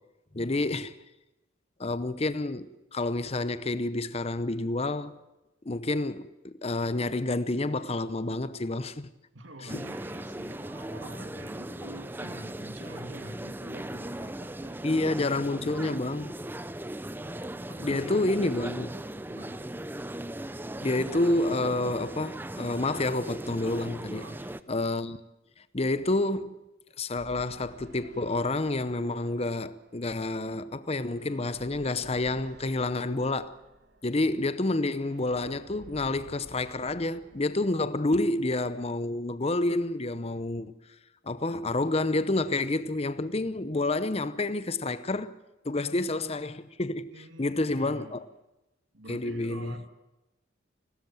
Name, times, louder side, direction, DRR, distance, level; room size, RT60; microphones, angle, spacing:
voice 1, 0.3-1.0 1.8-5.2 5.6-9.1 9.7-9.9 14.8-16.4 17.8-18.9 20.8-24.2 24.7-25.2 25.7-26.6 27.0-33.6 34.0-40.7 41.3-45.3 45.6-47.1 47.4-48.2 49.1-49.7, left 2 dB, 30° left, 0.7 m, -29 dB
voice 2, 9.3-15.1 17.4-18.9 19.3-19.7 24.1-24.4 34.7-34.8 38.1-38.3 47.1-48.2 48.9-49.9, right 1 dB, 70° right, 2.8 m, -46 dB
sound 1, 9.7-24.6, right 1 dB, 10° right, 0.6 m, -38 dB
sound 2, 27.2-38.4, right 1 dB, 55° right, 1.9 m, -53 dB
29.5 x 13.0 x 7.5 m
head